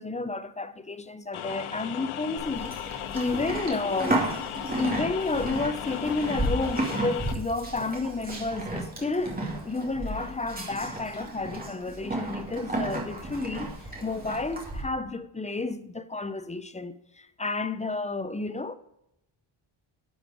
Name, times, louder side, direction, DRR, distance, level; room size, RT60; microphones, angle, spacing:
voice 1, 0.0-4.2 4.8-18.7, left 3 dB, 15° left, 0.4 m, -31 dB
sound 1, 1.3-7.3, left 10 dB, 85° left, 0.7 m, -37 dB
Livestock farm animals working animals, 2.4-14.8, right 1 dB, 20° right, 2.4 m, -33 dB
10.0 x 5.2 x 5.0 m
cardioid pair, 105°, 49 cm